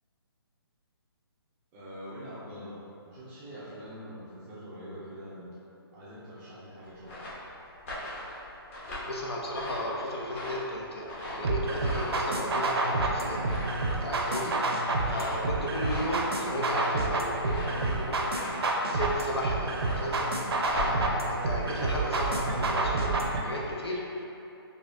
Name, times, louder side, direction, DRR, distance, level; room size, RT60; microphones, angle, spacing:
voice 1, 1.7-5.6 5.9-7.3, equal, 10° right, -9 dB, 0.4 m, -44 dB
sound 1, 6.8-22.1, left 1 dB, 30° left, 0.8 m, -40 dB
voice 2, 9.1-13.4 13.6-18.6 18.9-20.3 20.6-23.1 23.4-24.2, left 1 dB, 80° left, -2 dB, 0.7 m, -35 dB
sound 2, 11.4-23.4, right 2 dB, 75° right, 0.5 m, -29 dB
4.2 x 2.7 x 2.6 m, 2.8 s
hypercardioid pair, 165°, 13 cm